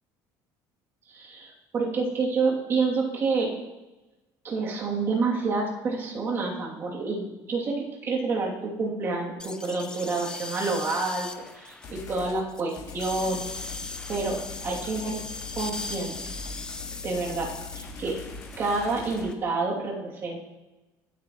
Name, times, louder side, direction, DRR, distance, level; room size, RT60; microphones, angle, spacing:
voice 1, 1.1-3.5 4.4-13.8 14.1-15.2 15.5-16.3 17.0-18.2 18.6-20.4, right 3 dB, 30° right, -3 dB, 2.9 m, -28 dB
sound 1, 9.4-19.3, left 2 dB, 10° left, 0.7 m, -39 dB
sound 2, 11.8-12.4 12.8-19.2, left 6 dB, 45° left, 2.7 m, -41 dB
24.5 x 9.0 x 3.1 m, 1.1 s
cardioid pair, 165°, 8 cm